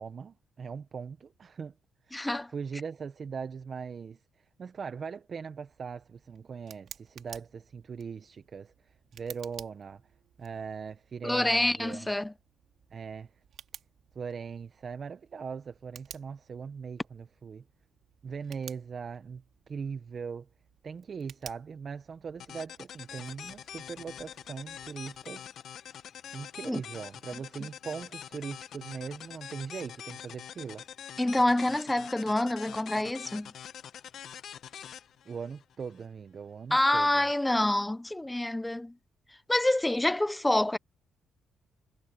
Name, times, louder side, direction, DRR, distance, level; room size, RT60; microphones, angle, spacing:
voice 1, 0.0-1.7 2.1-10.0 10.4-12.1 12.9-13.3 14.1-17.6 18.2-20.5 20.8-25.5 26.3-30.8 35.2-37.2, right 6 dB, 45° right, 0.9 m, -40 dB
voice 2, 2.1-2.5 11.2-12.3 26.7-26.8 31.2-33.5 36.7-38.9 39.5-40.8, left 1 dB, 10° left, 0.7 m, -27 dB
Tick, 5.7-25.3, right 9 dB, 65° right, 4.0 m, -54 dB
sound 1, 22.4-36.1, left 9 dB, 65° left, 1.2 m, -45 dB
cardioid pair, 90°, 0 cm